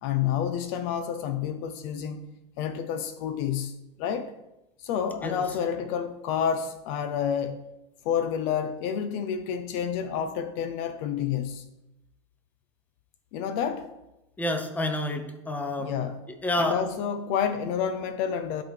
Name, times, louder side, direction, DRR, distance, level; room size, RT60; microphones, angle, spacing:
voice 1, 0.0-2.3 2.6-3.7 4.0-4.3 4.8-7.6 8.0-11.6 13.3-13.9 15.8-16.2 16.6-18.6, left 8 dB, 55° left, 0.6 m, -29 dB
voice 2, 14.4-15.9 16.4-16.8, left 1 dB, 10° left, 0.8 m, -29 dB
11.0 x 4.0 x 3.4 m
hypercardioid pair, 105°, 16 cm